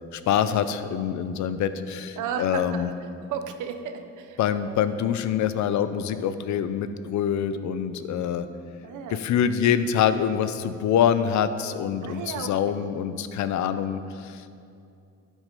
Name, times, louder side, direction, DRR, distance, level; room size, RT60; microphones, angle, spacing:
voice 1, 0.1-2.9 4.4-8.5 9.1-14.5, left 8 dB, 70° left, 12 dB, 0.6 m, -25 dB
voice 2, 2.2-2.9 3.3-4.8 8.8-9.2 12.0-12.8 13.7-14.0, right 7 dB, 80° right, 7 dB, 0.8 m, -34 dB
11.5 x 5.3 x 5.3 m, 2.5 s
cardioid pair, 90°, 30 cm